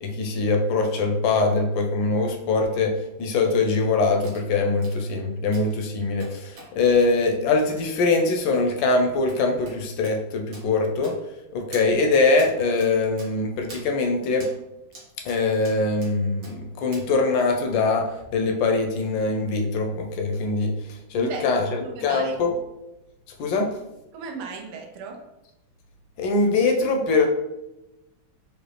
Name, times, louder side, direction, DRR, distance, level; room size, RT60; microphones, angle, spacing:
voice 1, 0.0-2.9 3.2-11.1 11.5-14.5 15.2-20.7 21.1-22.5 23.4-23.7 26.2-27.3, left 3 dB, 75° left, 3 dB, 1.2 m, -22 dB
sound 1, 4.2-4.4 4.8-5.0 5.5-5.8 6.2-6.7 7.0-7.1 7.8-7.9 8.1-8.3 8.5-8.6 8.9-9.0 9.3-9.4 9.7-9.8 10.0-10.2 10.5-10.6 11.0-11.4 11.7-11.9 12.4-12.5 12.8-12.9 13.2-13.3 13.7-13.9 14.4-14.5 14.9-15.4 15.6-16.1 16.4-16.5 16.9-17.0 17.4-17.5, right 1 dB, 60° right, 1.7 m, -44 dB
voice 2, 21.1-22.3 24.1-25.2, right 4 dB, 85° right, 2 dB, 1.5 m, -36 dB
4.9 x 2.4 x 3.2 m, 0.94 s
omnidirectional pair, 2.3 m